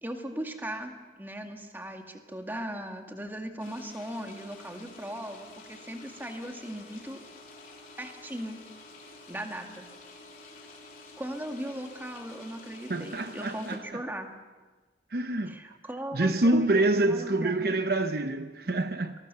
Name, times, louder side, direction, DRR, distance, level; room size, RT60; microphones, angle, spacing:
voice 1, 0.0-7.2 8.0-8.6 9.3-9.9 11.2-14.3 15.5-17.7, right 1 dB, 10° right, 2.1 m, -38 dB
sound 1, 3.6-13.8, left 3 dB, 50° left, 3.9 m, -49 dB
voice 2, 12.9-14.0 15.1-15.8 16.1-19.2, right 2 dB, 55° right, 0.9 m, -27 dB
26.0 x 20.5 x 6.9 m
head